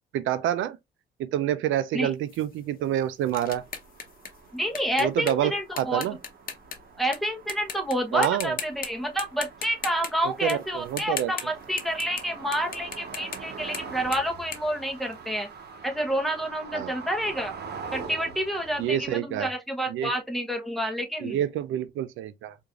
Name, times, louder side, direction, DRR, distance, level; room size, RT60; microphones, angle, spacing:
voice 1, 0.1-0.8 1.2-3.6 5.0-6.2 8.1-8.6 10.4-11.3 16.7-16.9 18.8-19.5 19.9-20.1 21.2-22.6, right 11 dB, 80° right, 0.4 m, -27 dB
sound 1, 2.3-7.2 7.5-7.9 8.2-8.9 9.2-12.3 12.5-15.5, left 6 dB, 45° left, 0.9 m, -38 dB
sound 2, 3.3-19.1, right 5 dB, 55° right, 0.9 m, -44 dB
voice 2, 4.5-6.1 7.0-15.5 15.8-17.5 17.9-21.4, equal, ahead, 0.9 m, -29 dB
4.7 x 2.6 x 2.3 m
cardioid pair, 90°, 20 cm